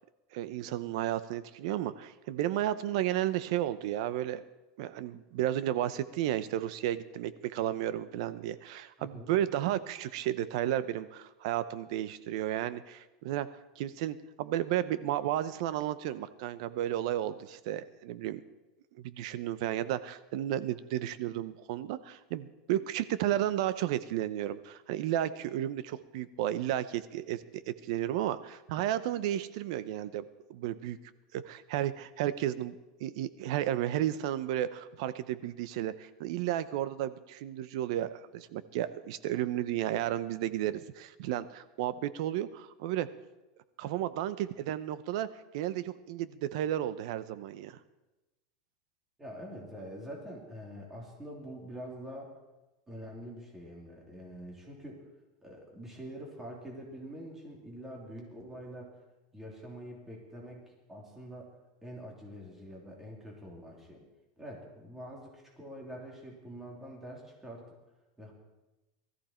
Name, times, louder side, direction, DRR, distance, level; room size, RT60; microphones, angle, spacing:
voice 1, 0.3-4.4 4.8-13.5 13.8-18.4 19.0-30.2 30.5-31.0 31.3-32.7 33.0-43.1 43.8-45.3 45.5-47.7, right 12 dB, 60° right, 14 dB, 0.8 m, -33 dB
voice 2, 9.0-9.3 49.2-52.3 52.9-55.0 55.4-58.9 59.3-61.5 61.8-64.0 64.4-67.6 68.2-68.3, equal, 10° right, -2 dB, 3.0 m, -45 dB
19.5 x 14.0 x 4.4 m, 1.0 s
supercardioid pair, 155°, 4 cm